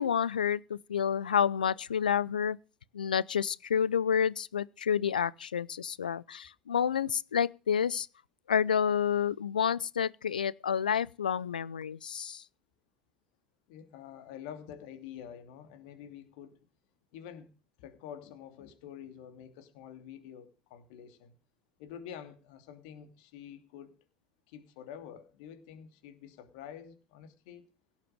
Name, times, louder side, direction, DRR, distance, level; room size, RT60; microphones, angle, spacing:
voice 1, 0.0-2.6 2.9-8.1 8.5-12.4, left 8 dB, 85° left, 0.6 m, -29 dB
voice 2, 13.7-16.6 17.1-17.5 17.8-21.3 21.8-23.9 24.5-27.6, left 9 dB, 65° left, 2.8 m, -47 dB
17.0 x 7.4 x 6.6 m
hypercardioid pair, 75°, 5 cm